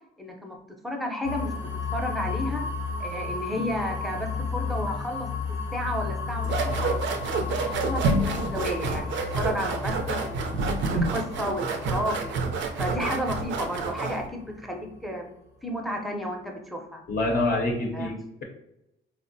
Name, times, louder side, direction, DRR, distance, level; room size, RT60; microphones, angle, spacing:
voice 1, 0.2-0.6 0.8-2.6 3.0-5.3 5.7-7.0 7.4-10.5 10.9-12.4 12.8-15.3 15.6-17.0 17.9-18.1, equal, ahead, 2 dB, 0.6 m, -32 dB
sound 1, 1.2-15.0, left 4 dB, 90° left, 0.7 m, -34 dB
sound 2, 6.4-14.3, right 3 dB, 70° right, 0.5 m, -28 dB
voice 2, 17.1-18.4, left 2 dB, 45° left, 0 dB, 0.6 m, -26 dB
3.4 x 2.1 x 2.6 m, 0.84 s
cardioid pair, 90°, 20 cm